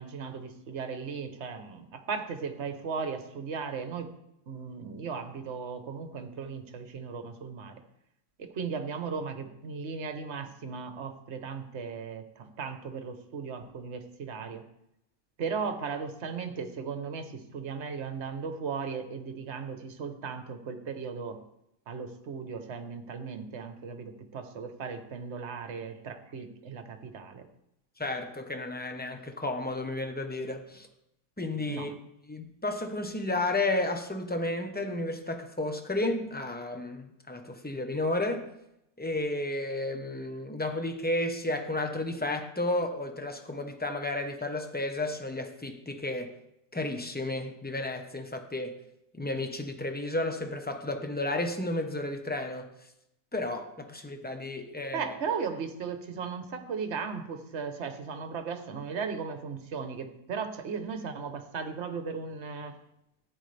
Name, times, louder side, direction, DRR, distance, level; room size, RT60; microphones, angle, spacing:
voice 1, 0.0-4.1 4.5-7.8 8.4-14.6 15.4-21.4 21.9-27.5 31.7-31.9 54.9-62.8, right 5 dB, 55° right, 1.3 m, -37 dB
voice 2, 28.0-30.9 31.4-31.9 32.3-38.5 39.0-46.3 46.7-48.7 49.1-52.7 53.3-55.1, left 2 dB, 10° left, 0.9 m, -32 dB
14.5 x 9.9 x 3.4 m
omnidirectional pair, 1.4 m